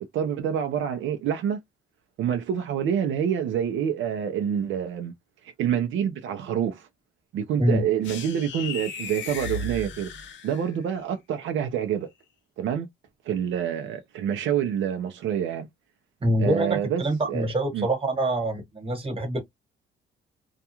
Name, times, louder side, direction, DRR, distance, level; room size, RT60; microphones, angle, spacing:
voice 1, 0.1-1.6 2.2-5.1 5.4-6.9 7.3-10.1 10.4-12.1 12.6-12.9 13.2-15.7 16.4-17.9, right 9 dB, 75° right, 0.5 m, -27 dB
sound 1, 8.0-10.9, left 3 dB, 65° left, 0.7 m, -36 dB
voice 2, 16.2-19.4, right 1 dB, 30° right, 1.3 m, -25 dB
2.3 x 2.2 x 2.8 m
cardioid pair, 90°, 20 cm